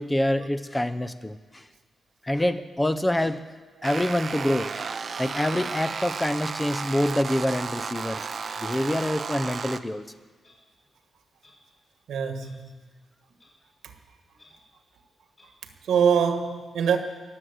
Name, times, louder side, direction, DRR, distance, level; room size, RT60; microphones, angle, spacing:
voice 1, 0.0-1.6 2.2-3.4 3.8-8.2 8.6-10.0, left 1 dB, 10° left, 11 dB, 0.6 m, -26 dB
sound 1, 3.8-9.8, right 5 dB, 45° right, 0.6 m, -33 dB
Clock, 8.4-8.6 9.4-9.6 10.4-10.5 11.4-11.5 12.4-12.5 13.4-13.5 14.4-14.5 15.4-15.5, left 2 dB, 35° left, 6.2 m, -56 dB
voice 2, 12.1-12.7 13.8-13.9 15.8-17.0, right 7 dB, 90° right, 7 dB, 1.6 m, -24 dB
22.5 x 7.8 x 8.0 m, 1.4 s
wide cardioid pair, 130°, 0 cm